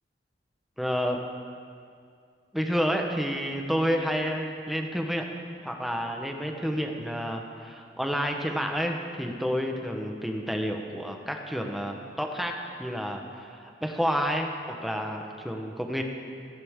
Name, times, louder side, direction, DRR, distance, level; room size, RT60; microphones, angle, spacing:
voice 1, 0.8-1.2 2.5-5.2 5.6-12.5 12.8-13.2 13.6-16.0, equal, ahead, 2 dB, 1.1 m, -29 dB
28.0 x 10.5 x 3.7 m, 2.3 s
head